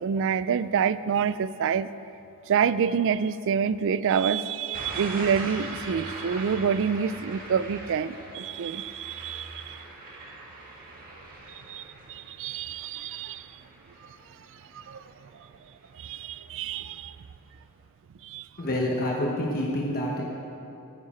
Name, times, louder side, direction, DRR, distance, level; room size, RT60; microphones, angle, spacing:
voice 1, 0.0-1.9 2.5-9.8 11.5-13.6 14.7-15.0 15.9-17.2 18.2-18.5, right 7 dB, 60° right, 15 dB, 0.4 m, -27 dB
sound 1, 4.7-15.6 16.0-16.4, right 2 dB, 40° right, 1.9 m, -42 dB
voice 2, 18.6-20.3, left 1 dB, 45° left, -2 dB, 1.2 m, -27 dB
15.0 x 9.5 x 4.3 m, 2.8 s
head